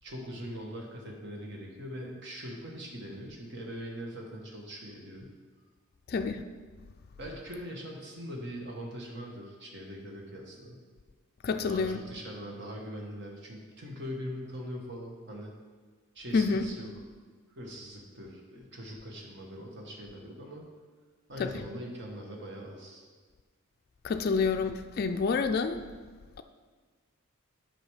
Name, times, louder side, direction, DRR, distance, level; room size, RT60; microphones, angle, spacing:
voice 1, 0.0-5.3 7.2-10.8 11.5-15.5 16.1-16.9 17.5-20.7 21.3-23.1, equal, 50° right, 0 dB, 1.4 m, -42 dB
voice 2, 6.1-6.4 11.4-12.0 16.3-16.7 21.4-21.5 24.0-25.8, left 4 dB, 45° left, 6 dB, 0.3 m, -28 dB
8.0 x 5.9 x 4.9 m, 1.5 s
head